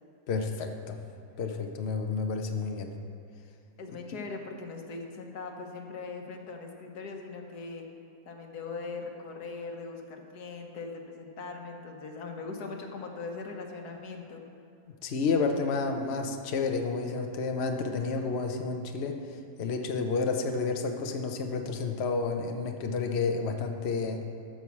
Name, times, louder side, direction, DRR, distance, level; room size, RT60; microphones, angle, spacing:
voice 1, 0.3-1.0 1.4-2.9 15.0-19.2 19.6-24.2, left 4 dB, 50° left, 4 dB, 0.9 m, -30 dB
voice 2, 3.8-7.8 8.3-14.4, left 4 dB, 90° left, 3 dB, 1.6 m, -40 dB
13.5 x 4.7 x 7.2 m, 2.5 s
omnidirectional pair, 1.6 m